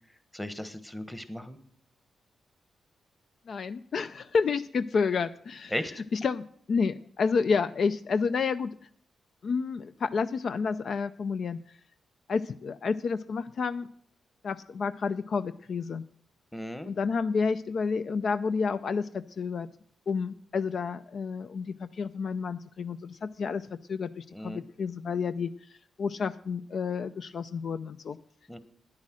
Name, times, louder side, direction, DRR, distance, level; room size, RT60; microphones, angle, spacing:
voice 1, 0.3-1.6 5.7-5.9 16.5-16.9 24.3-24.6 28.5-28.6, left 1 dB, 10° left, 10 dB, 1.2 m, -36 dB
voice 2, 3.5-5.7 6.1-8.8 9.4-11.6 12.3-13.9 14.4-16.0 16.9-19.7 20.1-28.2, left 5 dB, 60° left, 12 dB, 0.4 m, -30 dB
9.8 x 9.7 x 6.1 m, 0.62 s
cardioid pair, 80°, 0 cm